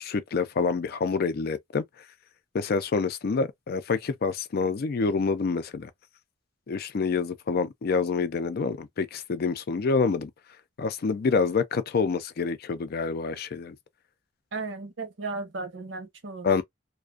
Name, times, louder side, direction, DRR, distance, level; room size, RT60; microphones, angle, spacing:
voice 1, 0.0-1.8 2.5-5.9 6.7-10.3 10.8-13.8 16.4-16.6, left 4 dB, 55° left, 0.4 m, -27 dB
voice 2, 14.5-16.6, right 3 dB, 75° right, 0.8 m, -35 dB
2.4 x 2.2 x 2.3 m
head